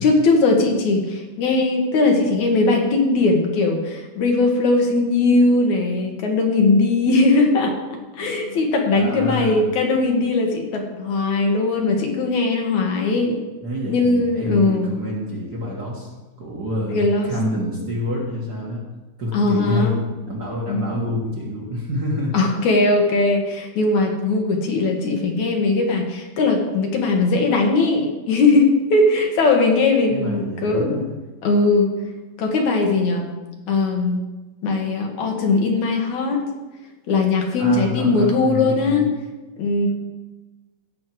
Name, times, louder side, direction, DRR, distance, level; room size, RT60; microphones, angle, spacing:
voice 1, 0.0-13.4 13.9-14.9 16.9-17.3 19.3-20.0 20.7-20.8 22.3-31.1 31.4-31.9 32.4-33.3 33.7-34.2 34.6-36.4 37.1-39.1 39.6-39.9, left 3 dB, 75° left, 2 dB, 2.7 m, -19 dB
voice 2, 8.9-9.7 13.6-16.1 16.4-18.8 19.2-22.3 30.1-31.1 37.6-39.1, left 1 dB, 40° right, -3 dB, 1.9 m, -27 dB
15.5 x 6.4 x 4.6 m, 1.2 s
omnidirectional pair, 3.4 m